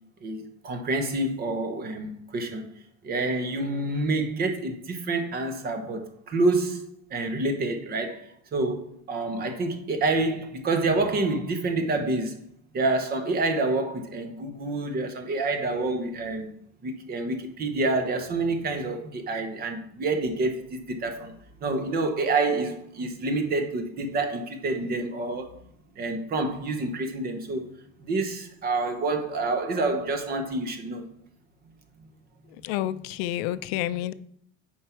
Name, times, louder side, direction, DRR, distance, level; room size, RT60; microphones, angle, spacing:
voice 1, 0.2-2.6 3.0-12.4 12.7-16.5 16.8-21.3 21.6-25.6 25.9-27.6 28.0-31.0 32.9-33.0 33.5-34.0, right 2 dB, 30° right, 1.0 m, -28 dB
voice 2, 32.6-34.1, left 13 dB, 85° left, 0.5 m, -29 dB
7.5 x 4.7 x 4.4 m
cardioid pair, 150°, 30 cm